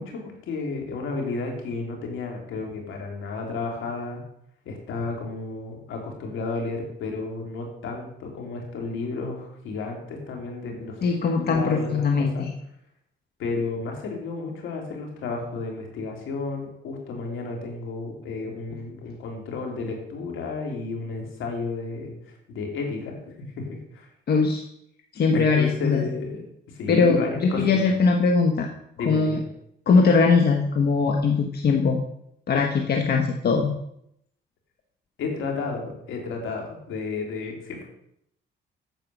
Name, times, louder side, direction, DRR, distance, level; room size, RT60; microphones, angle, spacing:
voice 1, 0.0-4.2 4.6-12.5 13.4-24.1 25.3-26.4 26.7-27.8 29.0-29.4 35.2-37.8, left 3 dB, 80° left, 1 dB, 3.2 m, -32 dB
voice 2, 11.0-12.5 24.3-24.6 25.1-26.0 26.9-28.7 29.0-29.4 29.9-32.0 32.5-33.7, left 4 dB, 55° left, 3 dB, 1.2 m, -21 dB
9.3 x 7.4 x 6.1 m, 0.75 s
cardioid pair, 90°, 20 cm